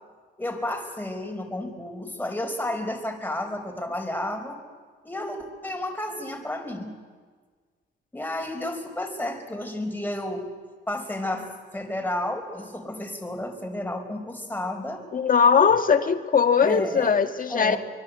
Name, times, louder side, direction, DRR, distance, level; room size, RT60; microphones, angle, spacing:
voice 1, 0.4-4.6 5.0-6.9 8.1-10.5 10.9-15.1 16.6-17.2 17.5-17.8, left 1 dB, 10° left, 3 dB, 5.1 m, -31 dB
voice 2, 15.1-17.8, left 6 dB, 45° left, 7 dB, 1.9 m, -20 dB
25.0 x 21.5 x 8.3 m, 1.5 s
cardioid pair, 90°, 20 cm